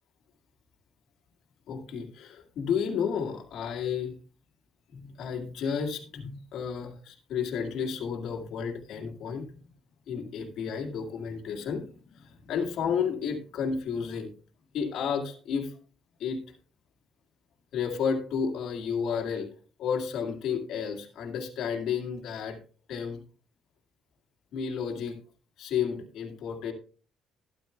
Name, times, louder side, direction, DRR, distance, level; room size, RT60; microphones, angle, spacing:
voice 1, 1.7-4.2 4.9-9.5 10.1-14.3 14.7-15.7 16.2-16.4 17.7-19.5 19.8-22.6 22.9-23.2 24.5-25.2 25.6-26.7, left 6 dB, 70° left, 1 dB, 1.9 m, -32 dB
12.5 x 11.0 x 2.3 m, 0.39 s
supercardioid pair, 60°, 0 cm